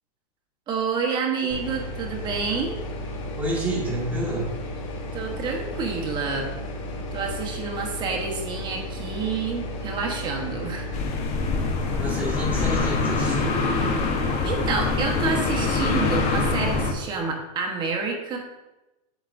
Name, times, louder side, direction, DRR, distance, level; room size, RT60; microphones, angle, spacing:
voice 1, 0.7-2.8 5.1-6.5 7.1-10.9 14.4-18.4, right 4 dB, 25° right, 1 dB, 1.2 m, -28 dB
sound 1, 1.5-12.1, left 1 dB, 55° left, 1.6 m, -34 dB
voice 2, 3.4-4.5 12.0-13.6, right 1 dB, 10° right, -4 dB, 1.9 m, -29 dB
sound 2, 10.9-16.9, left 3 dB, 35° left, 1.1 m, -24 dB
8.1 x 7.1 x 2.6 m, 1.0 s
supercardioid pair, 155°, 19 cm